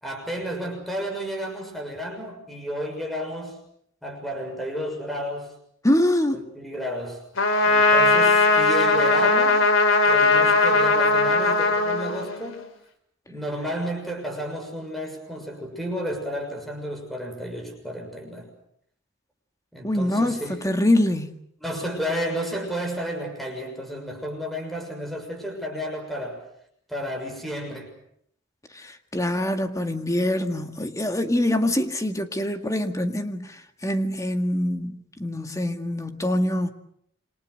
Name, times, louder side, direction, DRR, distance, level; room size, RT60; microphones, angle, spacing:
voice 1, 0.0-3.6 4.0-5.5 6.3-7.2 7.6-9.7 10.1-12.7 13.3-18.5 19.7-20.7 21.6-26.4 26.9-27.9, equal, ahead, 6.6 m, -32 dB
voice 2, 5.8-6.4 19.8-21.4 28.7-36.7, left 1 dB, 15° left, 1.9 m, -24 dB
Trumpet, 7.4-12.6, left 3 dB, 85° left, 3.0 m, -19 dB
28.0 x 26.0 x 6.6 m
head